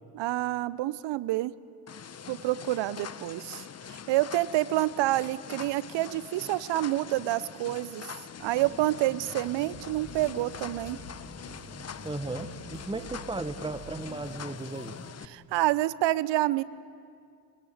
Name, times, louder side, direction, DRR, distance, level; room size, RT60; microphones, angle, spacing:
voice 1, 0.1-1.5 2.3-8.1 8.4-11.0 12.9-13.0 15.2-16.6, right 16 dB, 60° right, 19 dB, 0.9 m, -28 dB
sound 1, 1.9-15.3, left 7 dB, 30° left, 0.9 m, -44 dB
sound 2, 8.4-15.1, equal, 85° left, 3.9 m, -46 dB
voice 2, 12.0-15.0, right 2 dB, 10° right, 9 dB, 1.4 m, -35 dB
26.0 x 21.0 x 8.1 m, 2.3 s
hypercardioid pair, 45°, 50 cm